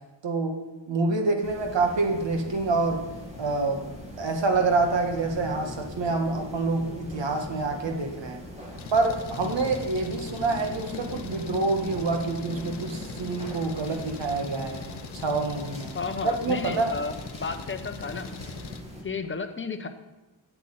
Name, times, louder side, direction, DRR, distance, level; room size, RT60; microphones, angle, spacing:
voice 1, 0.2-3.1 3.4-3.9 4.2-8.4 8.9-14.8 15.1-15.9 16.2-17.0, right 3 dB, 70° right, 3 dB, 1.7 m, -27 dB
sound 1, 1.4-19.0, equal, 15° right, 2.2 m, -41 dB
Engine, 8.8-18.8, left 6 dB, 60° left, 0.8 m, -41 dB
voice 2, 15.9-18.3 19.0-19.9, left 4 dB, 25° left, 7 dB, 0.8 m, -32 dB
8.3 x 7.9 x 8.8 m, 1.1 s
wide cardioid pair, 155°, 46 cm